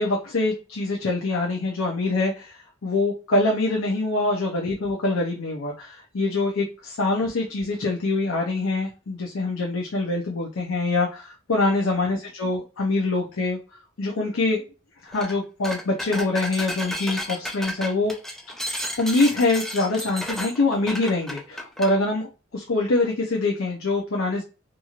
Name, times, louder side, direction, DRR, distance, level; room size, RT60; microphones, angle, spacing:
voice 1, 0.0-2.5 2.8-13.6 14.0-14.6 15.0-18.1 19.0-24.4, left 2 dB, 80° left, 0 dB, 0.6 m, -24 dB
sound 1, 15.1-15.3 15.6-22.0, equal, ahead, 0.4 m, -33 dB
2.9 x 2.6 x 2.4 m, 0.33 s
head